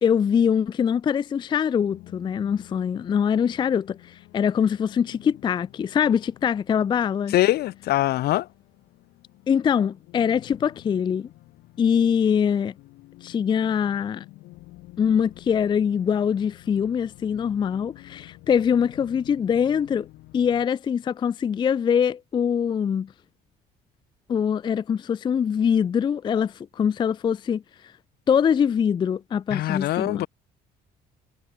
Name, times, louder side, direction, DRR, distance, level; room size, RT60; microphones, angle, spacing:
voice 1, 0.0-7.3 9.5-11.3 11.8-12.7 13.2-14.2 15.0-20.1 20.3-23.1 24.3-27.6 28.3-30.3, left 7 dB, 25° left, 0.3 m, -23 dB
sound 1, 1.8-20.7, left 19 dB, 90° left, 3.3 m, -49 dB
voice 2, 7.3-8.5 29.5-30.3, left 15 dB, 70° left, 0.8 m, -23 dB
cardioid pair, 110°, 17 cm